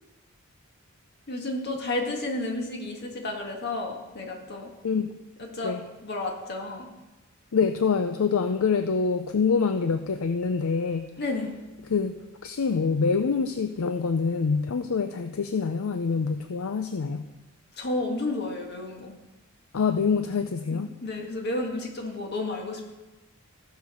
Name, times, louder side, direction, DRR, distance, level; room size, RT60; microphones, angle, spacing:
voice 1, 1.3-4.7 5.4-5.8 6.0-6.9 11.2-11.5 17.7-19.2 20.7-22.9, left 2 dB, 50° left, 1 dB, 1.9 m, -31 dB
voice 2, 7.5-11.1 11.9-17.2 19.7-20.9, left 5 dB, 65° left, 8 dB, 0.5 m, -25 dB
15.0 x 5.1 x 6.3 m, 1.1 s
head